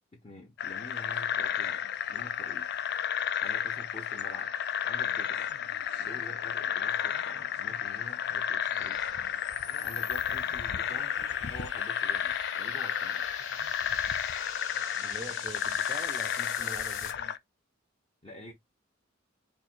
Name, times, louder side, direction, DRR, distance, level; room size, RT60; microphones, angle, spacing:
voice 1, 0.1-2.7 3.4-4.5 4.9-5.5 6.0-9.0 9.8-13.3 18.2-18.5, left 1 dB, 30° left, 1.0 m, -47 dB
sound 1, 0.6-17.4, left 9 dB, 55° left, 0.4 m, -32 dB
sound 2, 5.3-17.1, left 6 dB, 85° left, 1.4 m, -45 dB
voice 2, 15.0-17.2, right 2 dB, 25° right, 0.5 m, -44 dB
4.4 x 2.6 x 4.3 m
head